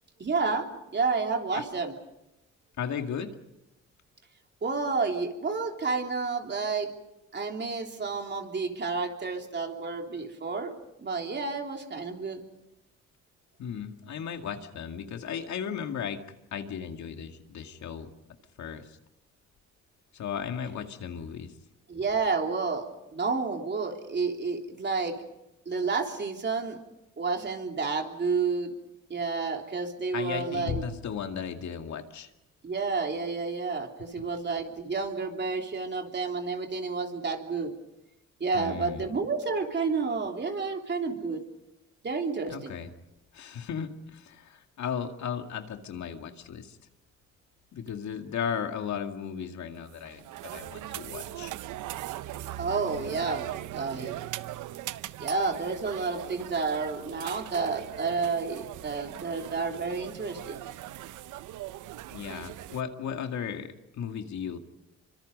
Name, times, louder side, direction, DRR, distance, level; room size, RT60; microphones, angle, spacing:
voice 1, 0.2-2.0 4.6-6.9 7.3-10.7 11.0-12.4 21.9-25.2 25.7-26.8 27.2-28.7 29.1-30.8 32.6-37.7 38.4-41.4 42.0-42.8 52.6-54.1 55.2-60.6, right 4 dB, 35° right, 3 dB, 3.3 m, -30 dB
voice 2, 2.8-3.3 13.6-16.2 16.5-18.1 18.6-19.0 20.1-21.5 30.1-32.3 38.5-39.0 42.5-42.9 43.3-46.8 47.7-51.5 62.1-64.6, left 7 dB, 65° left, 5 dB, 2.2 m, -35 dB
sound 1, 49.9-62.8, right 14 dB, 80° right, 0.8 m, -40 dB
27.5 x 25.0 x 5.4 m, 0.92 s
cardioid pair, 90°, 30 cm